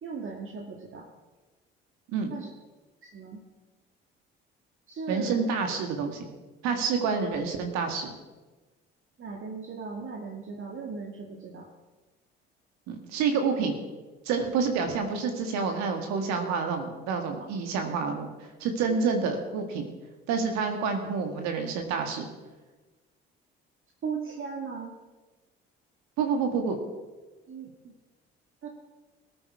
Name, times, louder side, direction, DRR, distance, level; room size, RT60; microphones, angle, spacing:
voice 1, 0.0-1.0 2.3-2.5 3.0-3.4 4.9-5.4 9.2-11.7 18.9-19.0 24.0-25.0 27.5-27.9 28.6-28.7, right 5 dB, 45° right, 1 dB, 2.0 m, -37 dB
voice 2, 5.1-6.2 6.6-8.1 12.9-13.8 14.3-18.3 18.6-19.9 20.3-22.3 26.2-26.8, right 5 dB, 70° right, 5 dB, 1.9 m, -28 dB
19.0 x 8.9 x 4.9 m, 1.2 s
hypercardioid pair, 55°, 29 cm